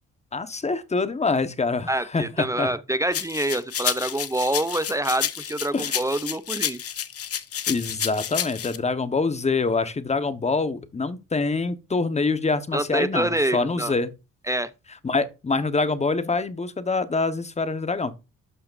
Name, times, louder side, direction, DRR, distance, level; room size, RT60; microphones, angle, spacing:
voice 1, 0.3-2.7 5.7-6.1 7.7-14.1 15.0-18.1, left 3 dB, 20° left, 1.1 m, -25 dB
voice 2, 1.9-6.8 12.7-13.9 14.5-14.7, right 1 dB, 10° right, 0.6 m, -26 dB
sound 1, 3.1-8.8, left 9 dB, 50° left, 1.0 m, -30 dB
12.0 x 5.7 x 2.6 m
cardioid pair, 90°, 30 cm